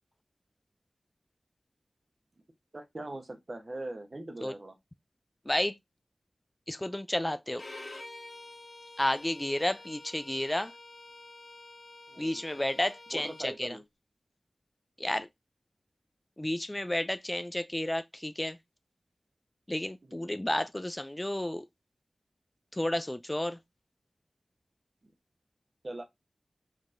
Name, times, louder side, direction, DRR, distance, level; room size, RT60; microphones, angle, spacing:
voice 1, 2.7-4.8 12.1-12.4 13.1-13.8 20.0-20.4 25.8-26.1, right 2 dB, 50° right, 1.0 m, -41 dB
voice 2, 6.7-7.6 9.0-10.7 12.2-13.8 15.0-15.3 16.4-18.6 19.7-21.6 22.7-23.6, left 1 dB, 20° left, 0.3 m, -31 dB
Bowed string instrument, 7.6-13.5, left 2 dB, 65° left, 1.6 m, -48 dB
4.5 x 2.9 x 2.6 m
cardioid pair, 40°, 0 cm